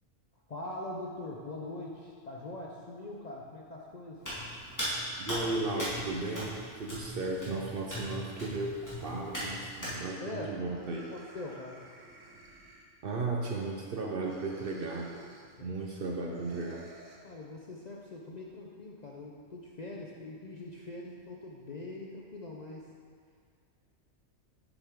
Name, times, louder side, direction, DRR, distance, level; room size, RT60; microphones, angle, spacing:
voice 1, 0.5-4.2 10.2-10.6 11.1-11.8 15.1-15.2 15.6-15.7 17.2-22.9, left 2 dB, 45° left, -2 dB, 0.5 m, -42 dB
Hands, 4.2-10.0, equal, 15° left, 2.0 m, -38 dB
voice 2, 5.2-11.1 13.0-15.1 15.6-16.9, right 3 dB, 55° right, -1 dB, 0.7 m, -35 dB
sound 1, 10.5-13.3 14.2-15.6 16.3-17.2, right 2 dB, 70° right, 1.3 m, -55 dB
7.2 x 6.8 x 3.6 m, 2.1 s
omnidirectional pair, 1.3 m